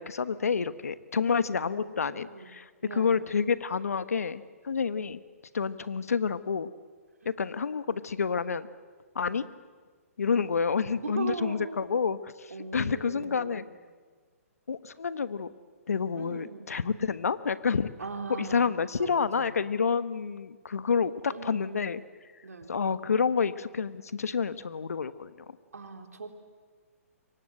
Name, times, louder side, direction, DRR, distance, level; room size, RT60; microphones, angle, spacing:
voice 1, 0.0-5.2 5.5-6.7 7.2-8.7 9.1-9.4 10.2-13.6 14.7-15.5 15.9-17.9 18.5-22.0 22.7-25.3, left 6 dB, 75° left, 14 dB, 1.2 m, -29 dB
voice 2, 1.3-2.5 2.8-3.3 9.3-9.4 11.0-11.8 12.5-13.6 16.2-16.7 18.0-19.5 21.3-21.9 22.4-22.7 25.7-26.3, right 4 dB, 80° right, 5 dB, 3.6 m, -40 dB
27.5 x 24.0 x 7.8 m, 1.5 s
hypercardioid pair, 135°, 8 cm